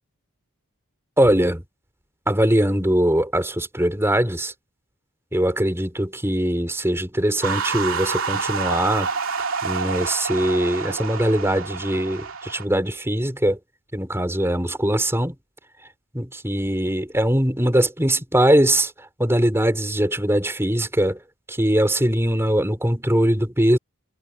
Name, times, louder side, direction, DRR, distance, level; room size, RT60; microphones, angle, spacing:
voice 1, 1.2-1.6 2.3-4.5 5.3-9.1 9.6-13.6 13.9-15.3 16.1-18.9 19.2-21.2 21.5-23.8, right 1 dB, 10° right, 4.4 m, -21 dB
sound 1, 7.4-12.6, right 5 dB, 65° right, 2.9 m, -28 dB
head